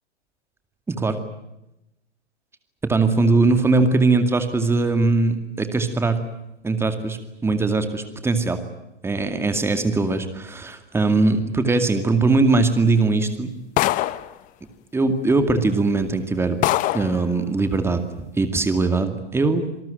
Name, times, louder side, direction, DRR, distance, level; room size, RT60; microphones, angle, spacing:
voice 1, 0.9-1.2 2.8-6.2 6.6-8.6 9.0-13.5 14.9-16.6 16.9-18.1 18.4-19.8, right 3 dB, 5° right, 8 dB, 2.2 m, -20 dB
sound 1, 13.8-14.3 15.4-15.5 16.0-16.1 16.6-17.2, left 16 dB, 25° left, 0.9 m, -22 dB
27.0 x 19.5 x 9.1 m, 0.89 s
figure-of-eight pair, 115°, 35 cm